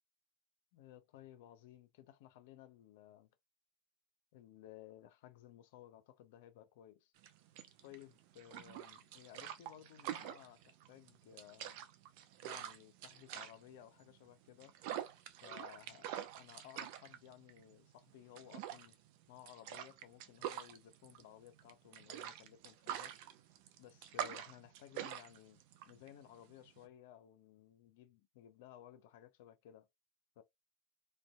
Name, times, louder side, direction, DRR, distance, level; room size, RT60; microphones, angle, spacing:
voice 1, 0.7-3.3 4.3-7.1 7.8-11.8 12.4-14.7 15.4-16.1 16.4-19.0 19.3-23.1 23.8-29.9 30.4-30.5, left 12 dB, 70° left, 0.4 m, -57 dB
sound 1, 7.2-26.9, right 11 dB, 65° right, 0.4 m, -46 dB
2.6 x 2.2 x 2.2 m
hypercardioid pair, 85°, 0 cm